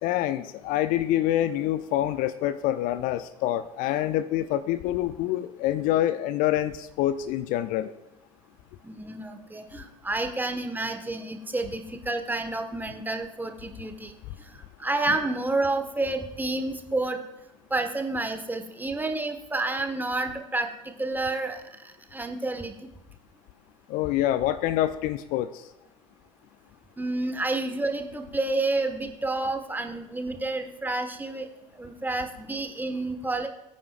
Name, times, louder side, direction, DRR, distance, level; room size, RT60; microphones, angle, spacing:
voice 1, 0.0-7.9 23.9-25.6, left 13 dB, 55° left, 13 dB, 0.6 m, -26 dB
voice 2, 8.8-14.1 14.4-17.2 17.7-22.9 27.0-31.5 31.7-33.5, right 2 dB, 10° right, 6 dB, 1.5 m, -30 dB
22.0 x 9.7 x 2.5 m, 0.93 s
figure-of-eight pair, 65°, 17 cm